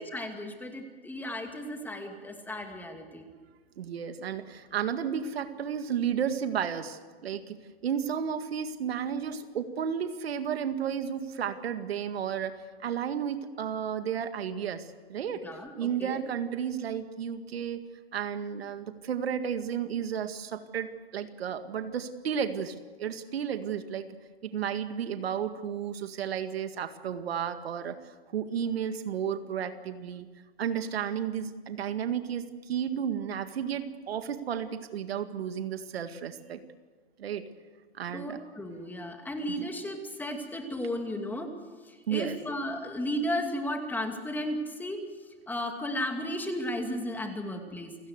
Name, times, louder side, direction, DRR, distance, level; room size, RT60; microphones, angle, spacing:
voice 1, 0.0-3.3 15.3-16.2 38.1-41.5 41.8-45.0 45.5-48.0, left 1 dB, 5° left, 4 dB, 2.5 m, -34 dB
voice 2, 3.8-7.6 7.8-15.5 15.8-17.8 18.1-24.1 24.4-30.3 30.6-36.6 37.2-37.4 37.9-38.4 39.5-39.7 42.1-42.4, right 8 dB, 75° right, 9 dB, 2.0 m, -33 dB
29.0 x 17.0 x 8.1 m, 1.4 s
hypercardioid pair, 140°, 31 cm